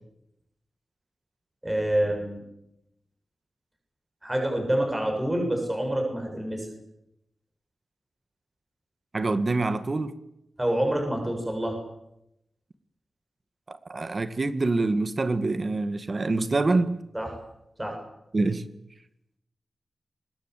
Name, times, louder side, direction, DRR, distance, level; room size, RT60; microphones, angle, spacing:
voice 1, 1.6-2.4 4.2-6.7 10.6-11.8 17.1-17.3 17.8-18.0, right 1 dB, 10° right, 7.4 m, -27 dB
voice 2, 9.1-10.2 13.7-17.0 18.3-18.7, right 3 dB, 40° right, 1.8 m, -26 dB
25.5 x 21.0 x 8.3 m
wide cardioid pair, 120°, 0 cm